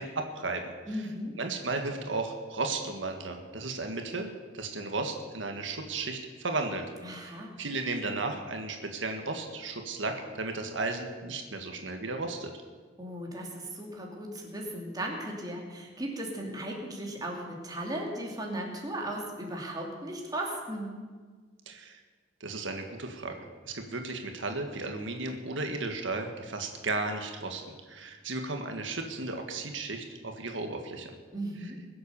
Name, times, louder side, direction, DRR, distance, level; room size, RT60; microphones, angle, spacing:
voice 1, 0.0-0.7 1.4-6.8 7.6-12.5 21.6-22.0 22.4-27.6 27.9-31.1, right 3 dB, 90° right, 4 dB, 1.7 m, -34 dB
voice 2, 0.9-1.4 7.0-7.6 13.0-21.0 31.3-31.9, right 1 dB, 20° right, 0 dB, 2.7 m, -36 dB
21.5 x 7.9 x 7.0 m, 1.5 s
head